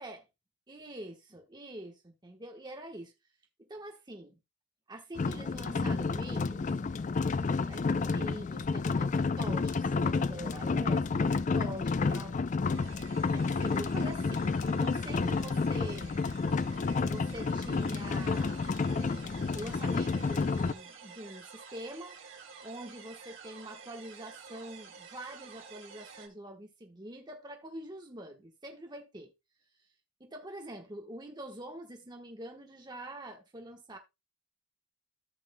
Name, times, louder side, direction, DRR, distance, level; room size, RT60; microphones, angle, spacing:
voice 1, 0.7-3.1 3.6-4.4 4.9-6.8 7.3-12.3 13.3-16.2 17.0-18.6 18.9-22.1 22.6-29.3 30.2-34.0, right 1 dB, 20° right, 1.2 m, -45 dB
sound 1, 5.2-20.7, left 4 dB, 40° left, 0.4 m, -30 dB
sound 2, 12.7-26.3, right 5 dB, 85° right, 2.0 m, -51 dB
14.5 x 6.4 x 2.2 m
head